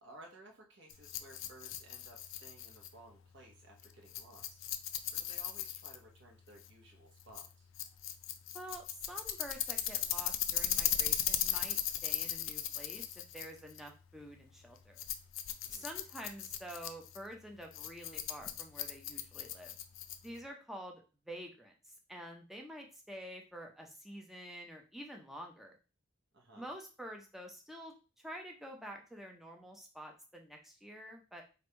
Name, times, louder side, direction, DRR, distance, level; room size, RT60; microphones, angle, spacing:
voice 1, 0.0-4.6 5.1-7.7 15.6-15.9 26.3-26.7, right 1 dB, 55° right, 0 dB, 1.1 m, -57 dB
Rattle, 0.9-20.5, left 11 dB, 60° left, 0.4 m, -38 dB
voice 2, 8.5-15.1 15.7-19.7 20.2-25.8 26.5-31.4, equal, ahead, 1 dB, 0.6 m, -48 dB
3.2 x 2.6 x 4.4 m, 0.33 s
head